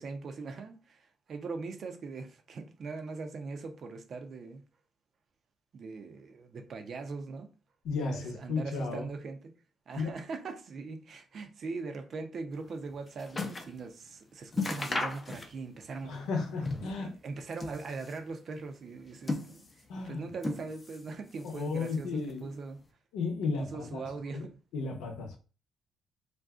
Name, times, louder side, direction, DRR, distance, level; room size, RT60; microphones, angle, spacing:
voice 1, 0.0-4.6 5.7-7.5 8.1-9.4 9.9-16.4 16.8-19.6 20.0-22.8 23.6-24.5, right 4 dB, 55° right, 0.6 m, -41 dB
voice 2, 7.8-9.1 10.0-10.2 16.0-17.2 19.9-20.3 21.4-22.5 23.1-24.5 24.7-25.4, left 4 dB, 90° left, 0.8 m, -34 dB
sound 1, 12.6-13.8 14.1-14.2 14.5-15.8 16.1-17.0 17.4-18.3 18.9-19.9 20.4-21.1 21.4-22.1 22.8-22.9, left 3 dB, 30° left, 0.6 m, -36 dB
2.5 x 2.3 x 3.5 m
cardioid pair, 90°, 0 cm